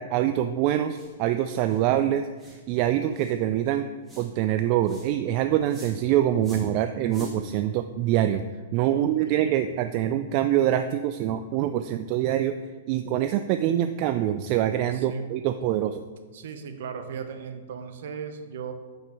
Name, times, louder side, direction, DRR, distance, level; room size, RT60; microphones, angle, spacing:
voice 1, 0.0-3.9 4.2-8.4 8.7-12.5 12.9-16.0, right 11 dB, 45° right, 9 dB, 0.3 m, -25 dB
sound 1, 0.9-1.1 1.6-1.8 2.4-2.6 3.1-3.4 4.1-4.3 4.8-5.1 5.7-6.0 6.4-6.7 7.1-7.4, equal, 10° right, 2.3 m, -45 dB
voice 2, 8.9-9.5 14.9-15.3 16.3-18.7, right 7 dB, 60° right, 7 dB, 0.8 m, -37 dB
5.7 x 5.4 x 5.2 m, 1.4 s
figure-of-eight pair, 110°, 0 cm